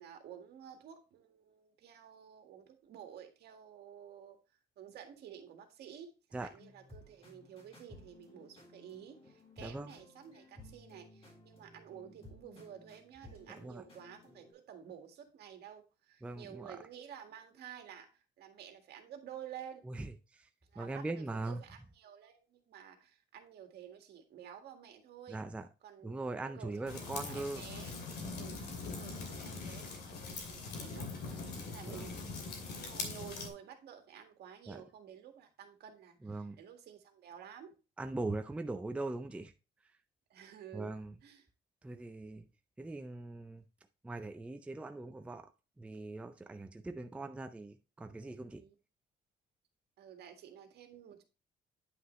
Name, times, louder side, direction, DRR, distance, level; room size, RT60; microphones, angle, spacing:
voice 1, 0.0-4.4 4.8-18.1 18.4-19.8 20.7-25.4 25.8-28.0 28.3-37.8 40.3-41.0 41.2-41.5 48.5-48.8 50.0-51.2, right 9 dB, 70° right, 1.8 m, -52 dB
sound 1, 6.5-14.5, left 1 dB, 35° left, 3.8 m, -57 dB
voice 2, 9.6-9.9 13.5-13.8 16.2-16.8 19.9-20.5 20.8-21.6 25.3-25.7 26.0-27.6 31.9-32.1 34.7-34.8 36.2-36.6 38.0-39.5 40.7-41.1 41.8-42.4 42.8-43.6 44.0-45.5 45.8-48.6, right 2 dB, 5° right, 0.4 m, -41 dB
sound 2, 26.9-33.5, left 4 dB, 70° left, 2.5 m, -42 dB
9.5 x 5.9 x 3.1 m
cardioid pair, 150°, 17 cm